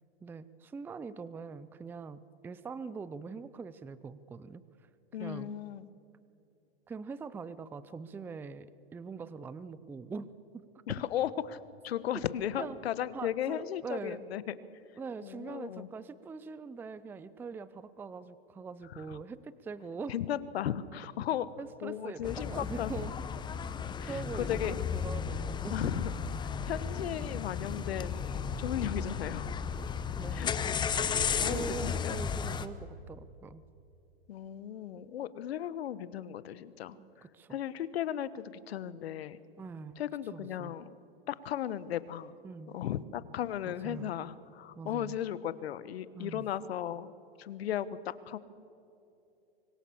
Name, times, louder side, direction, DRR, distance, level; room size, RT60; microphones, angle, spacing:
voice 1, 0.2-4.9 5.2-5.5 6.9-10.3 10.5-10.6 12.6-12.8 13.1-14.2 15.0-20.1 21.6-23.1 24.1-25.7 30.2-31.1 31.5-33.6 37.0-37.6 39.6-40.0 40.3-40.7 42.4-42.7 43.7-44.1 44.7-45.2 46.1-46.5, right 5 dB, 5° right, 16 dB, 0.5 m, -43 dB
voice 2, 5.1-5.9 10.9-11.6 11.8-14.5 15.2-15.9 18.9-19.2 20.1-21.5 21.8-22.9 24.0-24.8 25.7-26.1 26.4-29.5 30.3-30.5 31.4-32.2 34.3-39.4 40.0-40.9 41.3-42.3 42.7-47.1 47.4-48.4, left 10 dB, 70° left, 16 dB, 1.3 m, -36 dB
sound 1, 22.2-32.7, left 6 dB, 15° left, 0.8 m, -34 dB
25.0 x 22.0 x 7.3 m, 2.7 s
hypercardioid pair, 130°, 32 cm